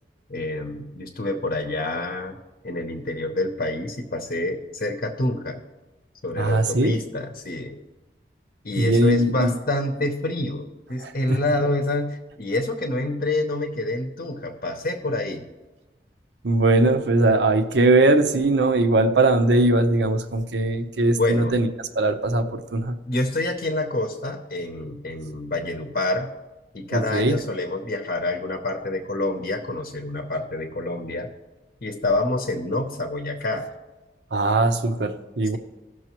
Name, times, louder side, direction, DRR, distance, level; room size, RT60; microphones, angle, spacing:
voice 1, 0.3-2.4 2.6-5.6 6.2-7.8 8.6-15.5 21.1-21.5 23.1-26.3 26.7-31.3 31.8-33.7, left 2 dB, 50° left, 5 dB, 0.7 m, -27 dB
voice 2, 6.4-7.0 8.8-9.5 11.0-11.4 16.4-21.7 22.0-22.9 26.9-27.4 34.3-35.6, right 2 dB, 80° right, 8 dB, 0.7 m, -20 dB
17.0 x 6.3 x 3.0 m, 1.2 s
head